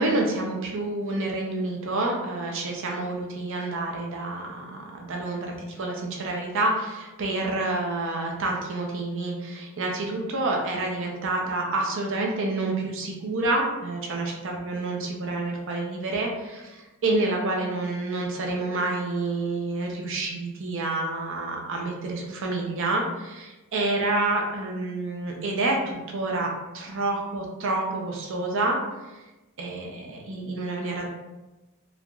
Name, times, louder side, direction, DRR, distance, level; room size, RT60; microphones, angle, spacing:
voice 1, 0.0-28.8 29.6-31.1, right 2 dB, 60° right, 0 dB, 0.5 m, -28 dB
3.3 x 2.5 x 2.3 m, 1.1 s
head